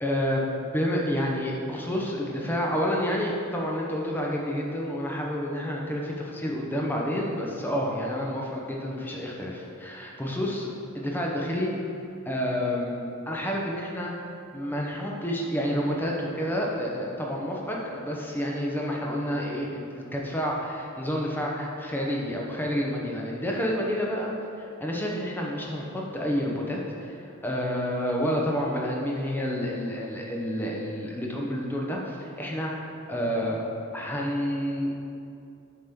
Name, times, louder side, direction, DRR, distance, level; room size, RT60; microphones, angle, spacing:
voice 1, 0.0-10.7 10.9-11.7 12.3-14.1 14.5-24.3 24.6-33.6 33.9-34.9, equal, 10° left, -2 dB, 0.7 m, -29 dB
6.8 x 3.0 x 5.2 m, 2.6 s
head